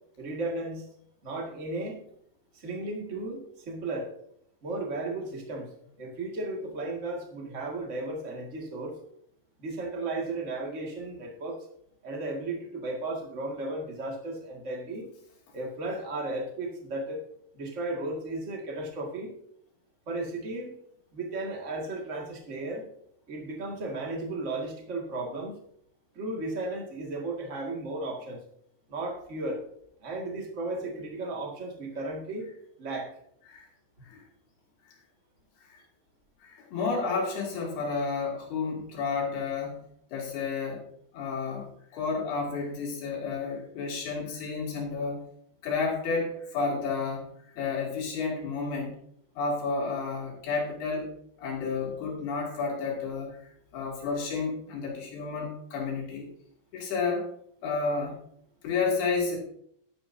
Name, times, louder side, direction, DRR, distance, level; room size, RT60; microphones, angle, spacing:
voice 1, 0.2-0.8 1.2-2.0 2.5-4.1 4.6-5.7 6.0-9.0 9.6-11.6 12.0-15.1 15.5-17.2 17.5-19.3 20.1-20.7 21.1-22.9 23.3-25.5 26.1-28.4 28.9-29.6 30.0-32.5 32.8-33.1, right 2 dB, 35° right, 0 dB, 1.1 m, -34 dB
voice 2, 36.4-39.8 40.1-40.9 41.1-45.3 45.6-49.0 49.4-51.1 51.4-56.3 56.7-57.3 57.6-58.2 58.6-59.4, left 4 dB, 70° left, -1 dB, 4.6 m, -31 dB
12.0 x 11.5 x 2.7 m, 0.68 s
omnidirectional pair, 4.8 m